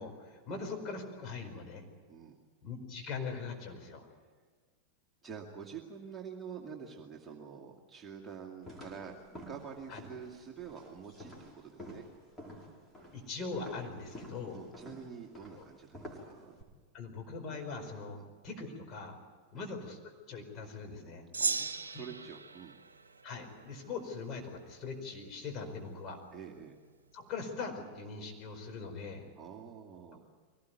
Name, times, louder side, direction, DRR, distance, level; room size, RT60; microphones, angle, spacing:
voice 1, 0.0-1.9 2.6-4.1 9.9-10.0 13.1-14.6 15.6-15.7 16.9-18.2 18.4-19.2 19.5-21.3 21.9-22.0 23.2-26.2 27.1-29.3, left 4 dB, 30° left, 2 dB, 4.8 m, -41 dB
voice 2, 5.2-12.0 14.5-16.6 18.1-18.3 19.5-19.7 21.4-22.8 26.3-26.7 29.4-30.2, right 6 dB, 15° right, -1 dB, 2.4 m, -47 dB
sound 1, 8.6-16.6, left 1 dB, 10° left, 5.2 m, -50 dB
Gong, 21.3-24.0, right 4 dB, 75° right, 1.1 m, -37 dB
24.0 x 18.5 x 9.4 m, 1.5 s
figure-of-eight pair, 90°, 0 cm